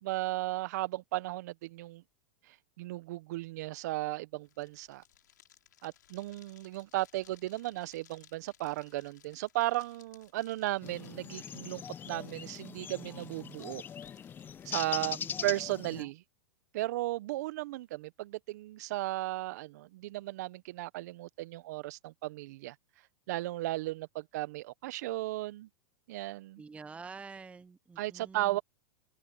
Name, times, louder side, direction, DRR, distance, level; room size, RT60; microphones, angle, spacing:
voice 1, 0.0-2.0 2.5-5.0 5.8-13.8 14.6-16.2 16.7-22.7 23.3-25.7 26.1-26.6 28.0-28.6, right 17 dB, 65° right, 1.1 m, -35 dB
sound 1, 4.4-14.7, left 10 dB, 80° left, 4.9 m, -63 dB
sound 2, 10.8-16.0, left 8 dB, 20° left, 0.5 m, -41 dB
voice 2, 14.9-15.5 15.9-16.1 26.6-28.6, right 4 dB, 15° right, 0.8 m, -48 dB
open air
hypercardioid pair, 110°, 10 cm